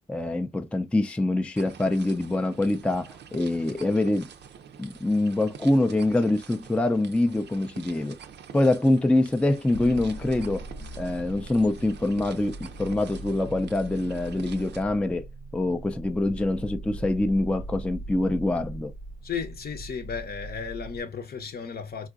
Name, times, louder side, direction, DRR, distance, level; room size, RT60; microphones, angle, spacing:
voice 1, 0.1-4.3 4.8-8.2 8.5-10.7 11.0-15.3 15.5-18.9, left 2 dB, 5° left, 0.4 m, -25 dB
sound 1, 1.6-14.8, right 7 dB, 65° right, 0.5 m, -47 dB
sound 2, 9.7-21.0, right 2 dB, 85° left, 0.7 m, -40 dB
voice 2, 19.2-22.1, left 6 dB, 55° left, 0.7 m, -34 dB
3.7 x 2.4 x 2.4 m
supercardioid pair, 50°, 20 cm